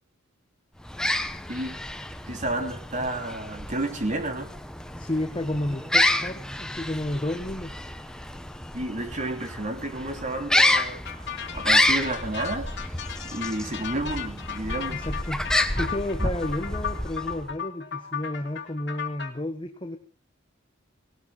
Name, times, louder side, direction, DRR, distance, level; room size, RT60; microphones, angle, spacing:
sound 1, 0.8-17.6, left 1 dB, 5° left, 1.0 m, -29 dB
voice 1, 1.5-1.8 2.3-4.5 8.7-11.0 11.5-12.7 13.3-15.0 16.2-16.3, right 2 dB, 40° right, 5 dB, 3.2 m, -31 dB
voice 2, 5.0-7.7 14.9-15.4 15.8-20.0, left 1 dB, 25° left, 5 dB, 1.3 m, -31 dB
sound 2, 10.7-19.3, left 8 dB, 60° left, 2.6 m, -35 dB
18.5 x 18.0 x 4.0 m, 0.37 s
head